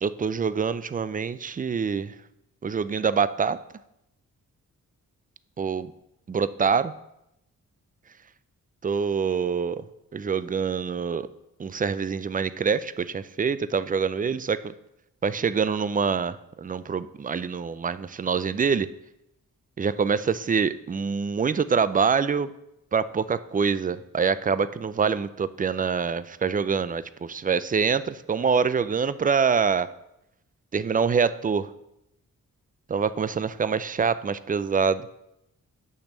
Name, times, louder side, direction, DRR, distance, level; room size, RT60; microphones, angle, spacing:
voice 1, 0.0-2.1 2.6-3.6 5.6-5.9 6.3-6.9 8.8-9.8 10.1-11.3 11.6-14.7 15.2-18.9 19.8-22.5 22.9-29.9 30.7-31.7 32.9-35.1, right 6 dB, 25° right, 15 dB, 0.4 m, -25 dB
8.7 x 3.4 x 6.5 m, 0.84 s
cardioid pair, 65°, 34 cm